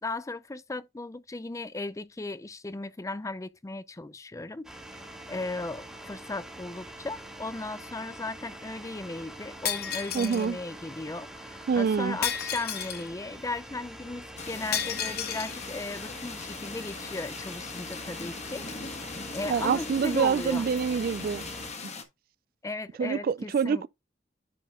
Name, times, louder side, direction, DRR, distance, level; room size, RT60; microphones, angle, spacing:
voice 1, 0.0-4.7 5.3-18.7 19.3-20.7 22.6-23.9, left 2 dB, 15° left, 0.4 m, -36 dB
sound 1, 4.6-21.7, right 1 dB, 5° right, 1.9 m, -44 dB
Shatter, 9.6-10.5 12.2-13.1 14.7-15.5, left 9 dB, 55° left, 1.2 m, -32 dB
voice 2, 10.1-10.6 11.7-12.2 19.4-21.4 23.0-23.9, right 6 dB, 50° right, 0.3 m, -26 dB
sound 2, 14.4-22.0, left 4 dB, 40° left, 1.4 m, -40 dB
10.0 x 4.2 x 3.6 m
head